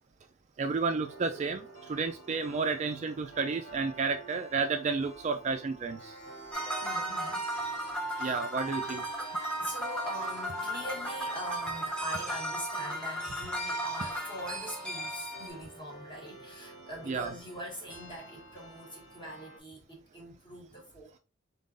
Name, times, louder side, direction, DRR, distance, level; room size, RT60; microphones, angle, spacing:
voice 1, 0.6-6.1 8.2-9.0 17.1-17.3, right 4 dB, 35° right, 0.3 m, -31 dB
sound 1, 0.8-19.6, right 2 dB, 70° left, 1.9 m, -50 dB
sound 2, 6.0-15.6, equal, 50° left, 1.5 m, -51 dB
sound 3, 6.5-15.5, right 1 dB, 5° left, 0.9 m, -35 dB
voice 2, 6.8-7.5 8.1-8.5 9.5-21.2, equal, 20° left, 1.3 m, -43 dB
4.0 x 3.6 x 2.6 m
head